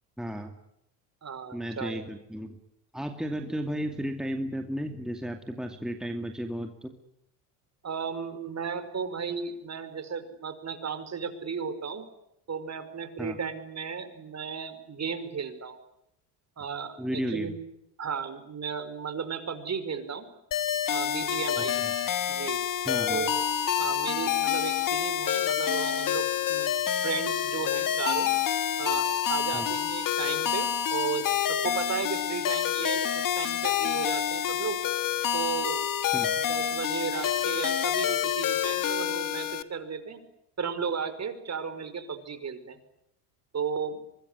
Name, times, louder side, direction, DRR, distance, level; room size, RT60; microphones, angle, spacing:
voice 1, 0.2-0.6 1.5-2.6 2.9-7.0 13.2-13.4 17.0-17.5 21.5-21.9 22.8-23.3 29.5-29.7 36.1-36.4, equal, ahead, 5 dB, 2.5 m, -34 dB
voice 2, 1.2-2.0 7.8-12.1 12.5-15.8 16.6-17.6 18.0-20.3 20.9-21.8 22.3-22.6 23.1-23.4 23.8-26.7 27.0-28.3 28.8-34.8 35.3-35.9 36.4-40.2 40.6-42.8 43.5-44.0, right 6 dB, 35° right, 10 dB, 5.0 m, -34 dB
sound 1, 20.5-39.6, left 9 dB, 40° left, 1.7 m, -28 dB
24.5 x 21.0 x 9.5 m, 0.81 s
supercardioid pair, 90°, 49 cm